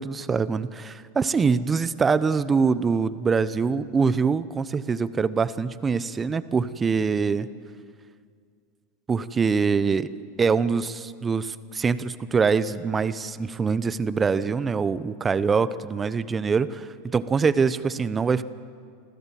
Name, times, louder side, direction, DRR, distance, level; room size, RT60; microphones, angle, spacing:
voice 1, 0.0-7.5 9.1-10.1 10.4-16.9 17.1-18.4, right 5 dB, 20° right, 15 dB, 0.8 m, -24 dB
26.5 x 15.5 x 7.6 m, 2.2 s
hypercardioid pair, 105°, 0 cm